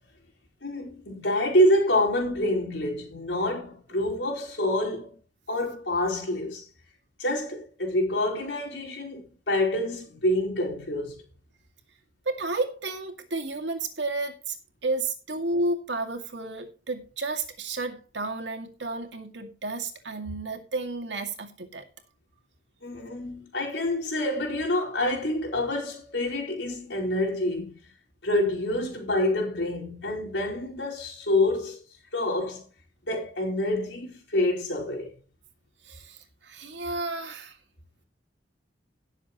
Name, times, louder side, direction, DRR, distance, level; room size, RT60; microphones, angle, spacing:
voice 1, 0.6-5.1 5.5-6.6 7.2-11.2 22.8-27.7 28.2-31.8 32.1-32.7 33.1-35.1, left 1 dB, 90° left, 4.6 m, -27 dB
voice 2, 12.3-14.6 14.8-21.8 35.8-37.6, right 2 dB, 80° right, 2.2 m, -32 dB
17.5 x 7.4 x 3.0 m
head